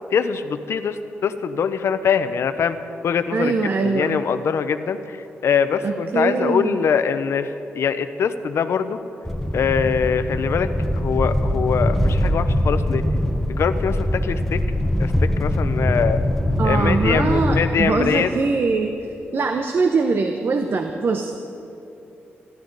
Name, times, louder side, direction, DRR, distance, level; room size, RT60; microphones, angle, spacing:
voice 1, 0.1-2.8 3.0-3.5 3.8-9.0 9.5-10.7 11.0-13.0 13.5-14.6 15.0-16.2 16.6-18.4, left 6 dB, 75° left, 11 dB, 0.8 m, -23 dB
voice 2, 3.3-4.2 5.8-6.8 16.6-18.9 19.3-21.4, right 4 dB, 55° right, 5 dB, 0.9 m, -22 dB
sound 1, 9.2-17.6, left 1 dB, 5° left, 1.1 m, -22 dB
24.5 x 12.0 x 4.1 m, 2.9 s
cardioid pair, 75°, 5 cm